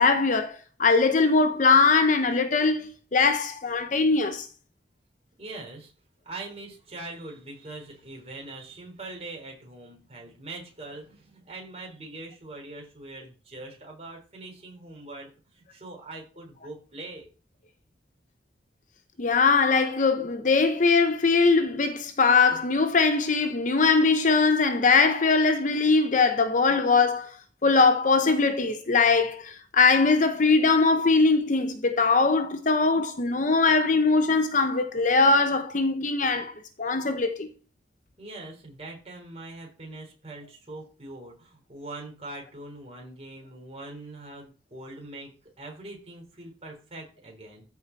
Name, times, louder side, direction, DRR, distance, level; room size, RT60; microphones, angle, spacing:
voice 1, 0.0-4.5 19.2-27.3 27.6-36.5 36.8-37.5, left 4 dB, 45° left, 0.8 m, -21 dB
voice 2, 5.4-5.9 6.2-17.3 38.2-45.3 45.6-47.6, right 2 dB, 35° right, 4.0 m, -42 dB
13.5 x 4.7 x 4.1 m
head